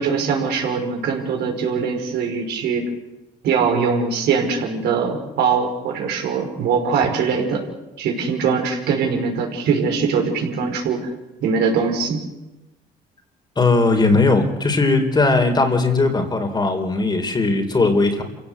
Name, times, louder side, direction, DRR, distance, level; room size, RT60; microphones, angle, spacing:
voice 1, 0.0-2.8 3.4-7.6 8.0-11.1 11.4-12.2, right 5 dB, 75° right, 2 dB, 5.5 m, -22 dB
voice 2, 13.6-18.2, left 3 dB, 25° left, 5 dB, 4.0 m, -18 dB
27.0 x 16.5 x 8.3 m, 1.0 s
cardioid pair, 110°, 17 cm